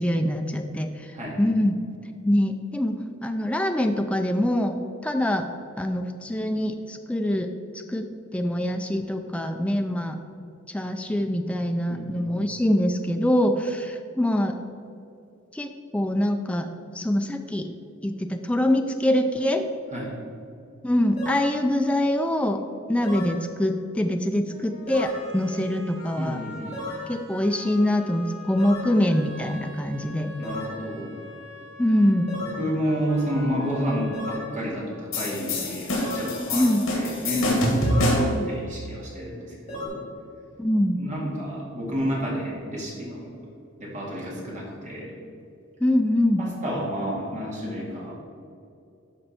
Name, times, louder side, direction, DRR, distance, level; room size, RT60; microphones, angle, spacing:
voice 1, 0.0-1.7 2.2-4.8 5.0-5.5 5.8-7.5 7.9-10.2 10.7-14.6 15.5-16.7 16.9-17.7 18.0-19.7 20.8-22.6 22.9-26.4 27.1-30.3 31.8-32.3 36.5-36.8 38.2-38.5 40.6-41.0 45.8-46.4, left 1 dB, 5° left, 5 dB, 0.3 m, -24 dB
voice 2, 11.9-12.2 19.9-20.1 26.2-26.9 30.4-31.2 32.4-40.0 41.0-43.3 43.8-45.1 46.4-48.1, equal, 35° right, -4 dB, 2.1 m, -30 dB
sound 1, 21.2-21.5 23.0-23.4 24.9-25.2 26.7-27.1 28.6-28.9 30.4-30.8 32.3-32.7 34.1-34.5 36.0-36.4 37.8-38.2 39.7-39.9, left 2 dB, 30° left, 2.1 m, -34 dB
sound 2, 24.5-35.4, left 1 dB, 60° right, 2.0 m, -44 dB
sound 3, 35.1-38.4, left 1 dB, 80° left, 1.9 m, -25 dB
12.0 x 4.3 x 4.3 m, 2.6 s
head